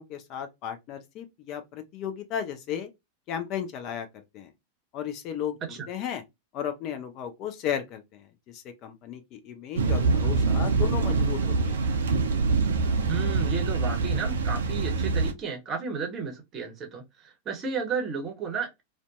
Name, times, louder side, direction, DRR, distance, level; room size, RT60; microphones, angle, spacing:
voice 1, 0.0-2.9 3.3-4.1 4.3-4.5 4.9-6.2 6.5-11.8, left 9 dB, 40° left, 0.4 m, -35 dB
sound 1, 9.8-15.3, right 4 dB, 65° right, 0.4 m, -25 dB
voice 2, 13.1-18.8, right 5 dB, 30° right, 0.8 m, -33 dB
2.5 x 2.2 x 2.3 m
figure-of-eight pair, 90°, 0 cm